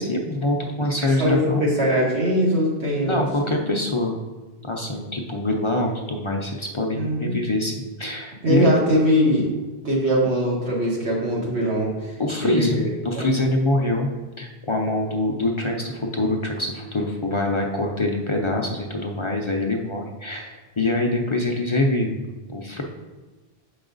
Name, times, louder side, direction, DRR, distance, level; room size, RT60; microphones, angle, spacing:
voice 1, 0.0-1.7 3.0-4.2 4.6-8.7 12.2-12.8 13.0-14.1 14.4-22.2 22.5-22.8, left 2 dB, 35° left, 1 dB, 0.5 m, -24 dB
voice 2, 1.2-3.2 6.9-7.4 8.4-9.5 9.8-12.1 12.4-12.9 13.1-13.3, equal, 90° right, -4 dB, 1.9 m, -21 dB
7.0 x 4.8 x 3.9 m, 1.2 s
omnidirectional pair, 1.1 m